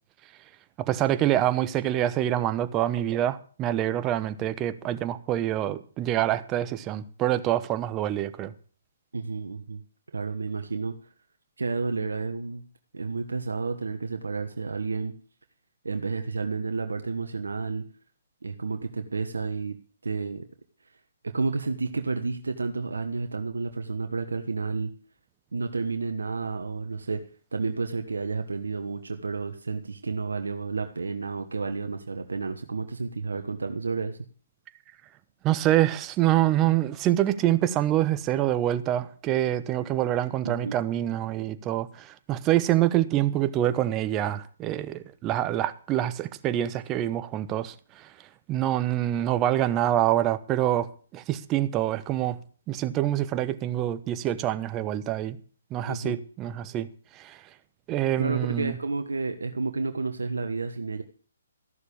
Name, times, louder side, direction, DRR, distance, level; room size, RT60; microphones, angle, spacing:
voice 1, 0.8-8.5 35.4-48.1 48.5-52.4 52.7-55.4 55.7-57.4 57.9-58.7, right 13 dB, 20° right, 1.0 m, -26 dB
voice 2, 9.1-9.8 10.1-10.9 11.6-12.6 12.9-15.1 15.8-17.8 18.4-19.8 20.0-20.4 21.2-24.9 25.5-27.2 27.5-34.2 40.4-40.8 55.9-56.2 58.2-61.0, right 4 dB, 80° right, 1.3 m, -31 dB
14.5 x 6.7 x 8.5 m
hypercardioid pair, 140°, 0 cm